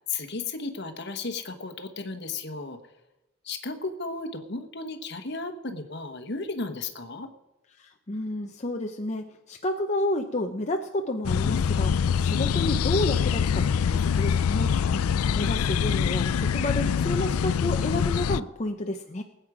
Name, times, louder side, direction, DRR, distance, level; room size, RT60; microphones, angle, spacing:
voice 1, 0.1-2.8 3.4-7.3 14.9-15.0, left 3 dB, 50° left, 8 dB, 1.2 m, -34 dB
voice 2, 7.8-14.7 15.3-19.2, left 1 dB, 30° left, 4 dB, 0.6 m, -30 dB
sound 1, 11.2-18.4, left 7 dB, 85° left, 0.4 m, -24 dB
19.5 x 8.9 x 4.9 m, 0.99 s
head